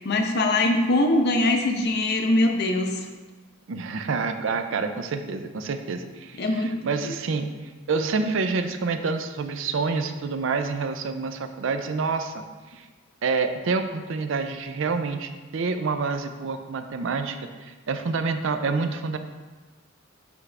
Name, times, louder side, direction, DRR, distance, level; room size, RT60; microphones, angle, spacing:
voice 1, 0.0-2.9 6.4-6.7, left 2 dB, 55° left, 4 dB, 0.6 m, -22 dB
voice 2, 3.7-7.5 7.9-12.9 13.2-19.2, right 4 dB, 65° right, 8 dB, 0.5 m, -28 dB
7.0 x 4.8 x 3.3 m, 1.3 s
head